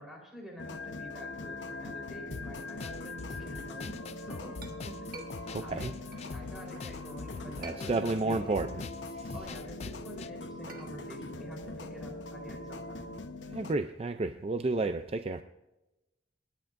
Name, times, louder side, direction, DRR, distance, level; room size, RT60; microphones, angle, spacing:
voice 1, 0.0-5.3 5.6-6.0 6.3-8.7 9.3-13.1, equal, ahead, -1 dB, 3.9 m, -47 dB
sound 1, 0.6-13.8, left 2 dB, 85° left, 1.0 m, -42 dB
sound 2, 2.3-10.3, left 5 dB, 35° left, 0.3 m, -44 dB
Chink clink, 4.2-6.9 7.4-8.4 8.8-12.9, right 3 dB, 50° right, 1.5 m, -52 dB
voice 2, 5.5-5.9 7.6-8.8 9.1-9.4 13.5-15.4, right 3 dB, 35° right, 9 dB, 0.4 m, -31 dB
27.0 x 10.5 x 2.6 m, 1.0 s
head